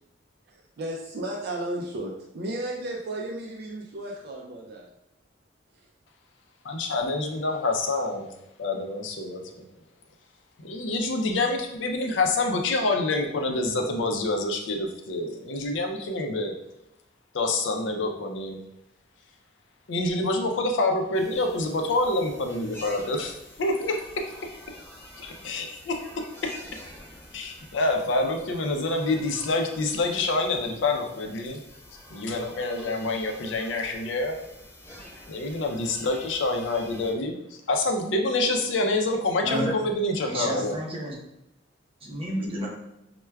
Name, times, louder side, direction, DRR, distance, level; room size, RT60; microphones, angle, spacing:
voice 1, 0.8-4.9, right 1 dB, 55° right, -1 dB, 0.4 m, -34 dB
voice 2, 6.6-8.3 8.6-9.4 10.6-16.5 17.3-18.6 19.9-23.3 23.6-24.0 25.2-26.3 27.3-31.6 32.1-34.4 35.3-37.4 37.7-40.7, left 2 dB, 75° left, 3 dB, 0.5 m, -27 dB
sound 1, 21.1-37.1, left 1 dB, 10° left, 0.7 m, -47 dB
voice 3, 39.4-39.7 40.3-41.2 42.0-42.7, right 1 dB, 30° right, -4 dB, 0.7 m, -30 dB
4.4 x 2.2 x 2.2 m, 0.85 s
head